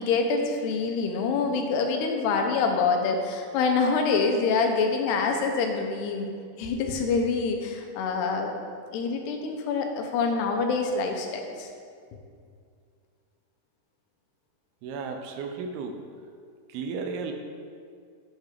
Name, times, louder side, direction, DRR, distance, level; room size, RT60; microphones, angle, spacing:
voice 1, 0.0-6.3 6.6-8.5 8.9-11.7, left 4 dB, 85° left, 4 dB, 3.0 m, -26 dB
voice 2, 14.8-16.0 16.7-17.3, right 5 dB, 80° right, 5 dB, 2.5 m, -34 dB
8.7 x 6.5 x 5.0 m, 2.2 s
omnidirectional pair, 4.7 m